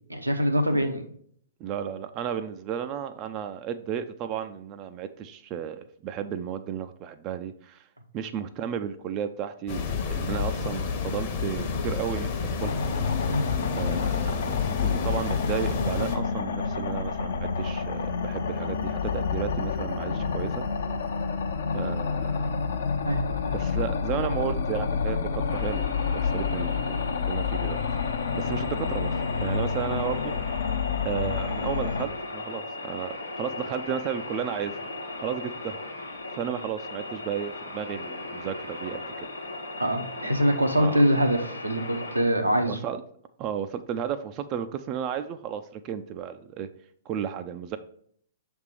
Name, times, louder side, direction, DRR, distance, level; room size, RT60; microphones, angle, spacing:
voice 1, 0.1-1.1 13.3-13.5 23.0-23.6 39.8-42.8, equal, 85° right, 4 dB, 0.8 m, -24 dB
voice 2, 1.6-7.8 8.1-12.4 12.6-12.8 13.7-14.5 14.8-20.7 21.7-22.6 23.5-27.8 28.3-29.1 29.4-30.3 31.0-34.7 35.2-35.8 36.3-39.1 40.8-41.0 42.7-43.0 43.4-46.7 47.1-47.8, right 8 dB, 30° right, 9 dB, 0.4 m, -33 dB
sound 1, 9.7-16.2, left 5 dB, 40° left, 0.9 m, -30 dB
sound 2, 12.6-32.0, left 5 dB, 60° left, 0.6 m, -29 dB
sound 3, 25.5-42.2, left 2 dB, 80° left, 1.1 m, -37 dB
6.4 x 3.5 x 4.9 m, 0.63 s
figure-of-eight pair, 110°, 0 cm